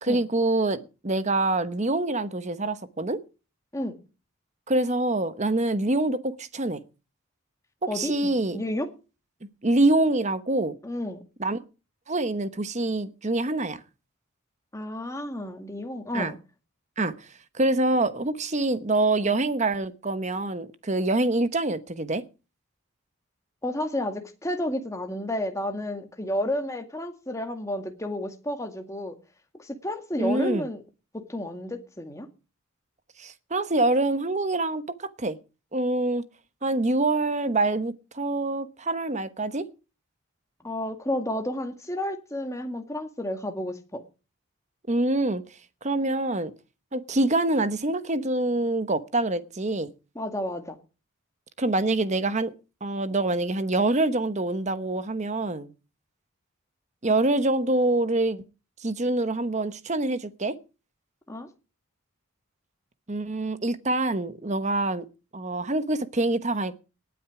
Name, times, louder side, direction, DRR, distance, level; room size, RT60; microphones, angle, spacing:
voice 1, 0.0-3.2 4.7-6.8 7.9-8.6 9.4-10.7 11.4-11.6 12.1-13.8 16.1-16.3 17.0-17.3 17.5-22.2 30.2-30.6 33.2-35.4 35.7-36.2 36.6-39.6 44.9-45.4 45.8-46.5 46.9-49.9 51.6-52.5 52.8-55.7 57.0-58.4 58.8-60.6 63.1-65.1 65.3-66.8, right 2 dB, 35° right, 1.0 m, -25 dB
voice 2, 7.9-8.9 10.8-11.2 14.7-16.4 23.6-29.2 29.6-30.8 31.1-32.3 40.6-44.0 50.2-50.8 61.3-61.5, left 1 dB, 15° left, 1.9 m, -31 dB
18.5 x 9.4 x 4.8 m
head